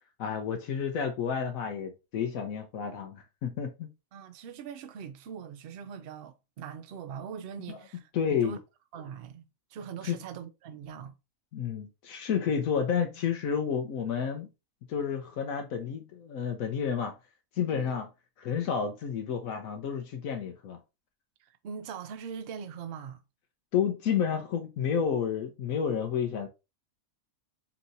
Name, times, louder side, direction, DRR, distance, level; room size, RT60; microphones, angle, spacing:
voice 1, 0.2-3.9 7.7-7.8 8.1-8.6 10.0-10.2 11.5-14.5 14.9-17.1 17.6-18.1 18.4-20.8 23.7-26.5, left 7 dB, 80° left, 1.1 m, -30 dB
voice 2, 4.1-8.6 8.9-11.1 17.7-18.0 21.4-23.2, right 7 dB, 60° right, 0.6 m, -42 dB
5.6 x 2.9 x 2.6 m
omnidirectional pair, 1.4 m